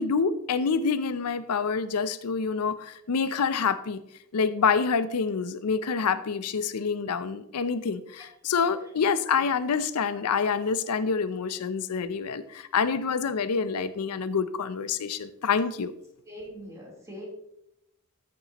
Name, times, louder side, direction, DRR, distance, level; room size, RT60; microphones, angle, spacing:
voice 1, 0.0-4.0 4.3-15.9, left 5 dB, 90° left, 13 dB, 0.5 m, -27 dB
voice 2, 16.2-17.3, equal, 15° right, -3 dB, 3.5 m, -43 dB
14.0 x 8.4 x 2.9 m, 0.81 s
head